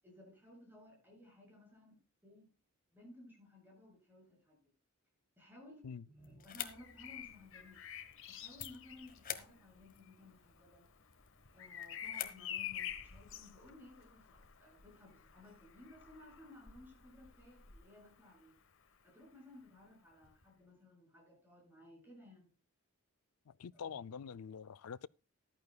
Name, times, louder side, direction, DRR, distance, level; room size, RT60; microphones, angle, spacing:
voice 1, 0.0-2.5 2.9-4.6 5.4-7.8 8.3-10.9 11.5-18.5 19.0-22.5 23.7-24.0, left 1 dB, 10° right, 7.6 m, -58 dB
sound 1, 6.2-12.9, left 10 dB, 40° left, 1.2 m, -49 dB
Bird vocalization bird call bird song, 6.7-18.5 20.2-20.4, left 10 dB, 60° left, 1.3 m, -49 dB
voice 2, 23.5-25.1, left 6 dB, 80° left, 0.4 m, -46 dB
14.5 x 12.0 x 2.3 m
head